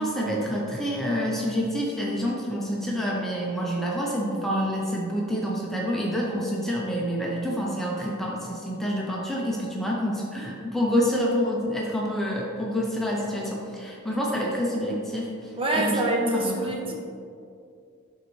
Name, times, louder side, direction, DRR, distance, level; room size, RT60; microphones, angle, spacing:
voice 1, 0.0-15.3 15.7-16.8, equal, ahead, -4 dB, 0.7 m, -27 dB
voice 2, 15.6-16.9, right 2 dB, 25° right, -1 dB, 0.9 m, -25 dB
11.0 x 4.0 x 3.2 m, 2.4 s
head